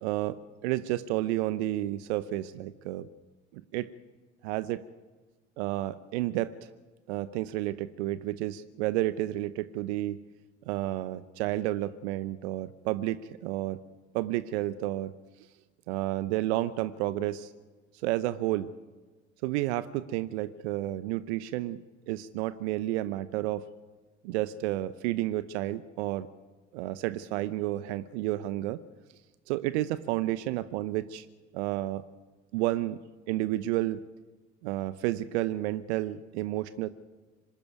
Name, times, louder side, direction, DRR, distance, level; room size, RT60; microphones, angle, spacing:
voice 1, 0.0-3.1 3.5-3.9 4.4-4.8 5.6-6.5 7.1-10.2 10.7-13.8 14.1-15.1 15.9-17.5 18.0-18.7 19.4-23.7 24.2-26.3 26.7-28.8 29.5-31.3 31.5-32.0 32.5-33.0 33.3-34.0 34.6-36.9, right 15 dB, 70° right, 15 dB, 0.8 m, -31 dB
25.5 x 12.0 x 9.3 m, 1.3 s
figure-of-eight pair, 60°, 35 cm